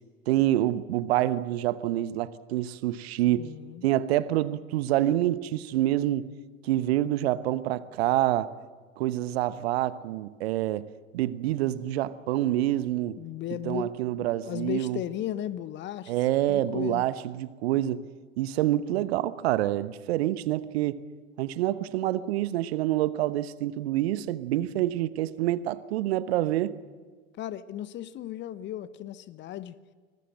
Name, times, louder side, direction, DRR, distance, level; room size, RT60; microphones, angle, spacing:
voice 1, 0.3-3.5 3.8-6.3 6.6-8.5 9.0-10.9 11.1-13.2 13.6-15.0 16.1-18.0 18.4-21.0 21.4-26.8, right 14 dB, 50° right, 1.1 m, -27 dB
voice 2, 3.4-3.8 13.2-16.1 16.5-17.0 24.7-24.8 27.4-29.8, left 11 dB, 30° left, 1.0 m, -36 dB
25.5 x 20.5 x 7.7 m
figure-of-eight pair, 85°, 39 cm